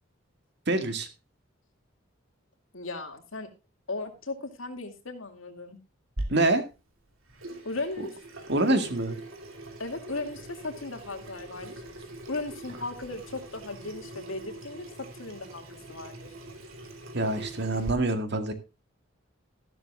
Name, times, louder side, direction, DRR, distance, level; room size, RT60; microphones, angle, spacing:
voice 1, 0.7-1.1 6.3-6.6 8.0-8.1 8.5-9.2 17.1-18.5, right 2 dB, 55° right, 7 dB, 1.9 m, -26 dB
voice 2, 2.7-3.5 3.9-5.8 7.6-8.1 9.8-11.7 12.3-16.3, left 2 dB, 80° left, 5 dB, 2.3 m, -36 dB
Water tap faucet / Sink (filling or washing), 6.2-17.9, right 1 dB, 85° right, 2.7 m, -42 dB
14.0 x 11.5 x 2.4 m, 0.29 s
head